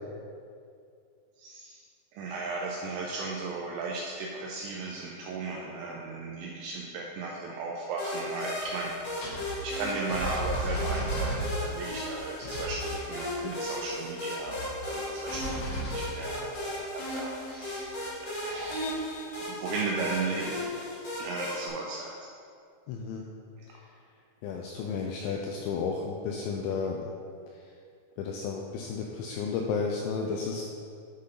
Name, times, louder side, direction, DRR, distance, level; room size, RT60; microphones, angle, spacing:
voice 1, 1.4-1.8 2.1-17.9 18.2-22.1, right 3 dB, 90° right, -2 dB, 2.6 m, -36 dB
sound 1, 8.0-21.7, left 1 dB, 55° left, 1.8 m, -36 dB
sound 2, 8.7-8.8 9.1-11.9 12.3-12.9 13.6-13.7 14.2-15.0 15.3-16.5 17.8-17.9 18.4-19.2, right 1 dB, 70° left, 3.7 m, -35 dB
voice 2, 22.9-23.2 24.4-27.1 28.2-30.6, left 5 dB, 90° left, 0 dB, 2.6 m, -32 dB
9.9 x 5.8 x 3.8 m, 2.3 s
omnidirectional pair, 5.8 m